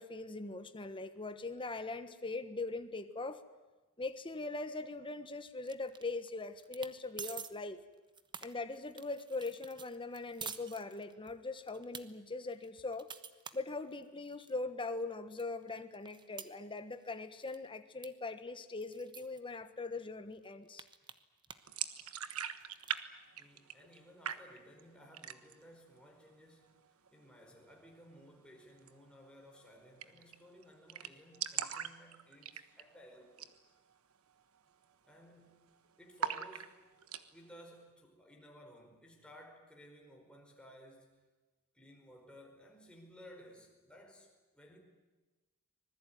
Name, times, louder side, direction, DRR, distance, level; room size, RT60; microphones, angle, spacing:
voice 1, 0.0-3.4 4.0-7.8 8.4-13.1 13.5-20.9, left 3 dB, 25° left, 9 dB, 1.4 m, -41 dB
sound 1, 5.7-6.3 6.6-6.9 7.2-7.5 7.9-11.3 11.7-12.0 12.5-14.5 15.0-15.1 15.4-17.2 17.4-17.7 18.0-18.1 18.3-18.4 18.8-19.4 20.0-20.1 20.3-21.7 22.0-23.0, right 6 dB, 20° right, 1.1 m, -48 dB
sound 2, 21.7-23.0 23.3-24.0 24.2-24.8 25.1-25.7 26.0-26.1 26.4-27.1 28.8-28.9 29.2-29.3 29.5-29.6 30.0-30.3 30.6-30.7 30.9-33.0 33.3-33.6 33.9-34.0 34.6-34.8 35.1-35.7 36.2-37.2, right 9 dB, 70° right, 1.3 m, -40 dB
voice 2, 23.3-26.7 27.1-33.6 35.0-35.6 36.0-36.8 37.3-41.2 41.7-44.8, equal, 5° left, 0 dB, 5.1 m, -57 dB
25.5 x 20.5 x 9.4 m, 1.2 s
head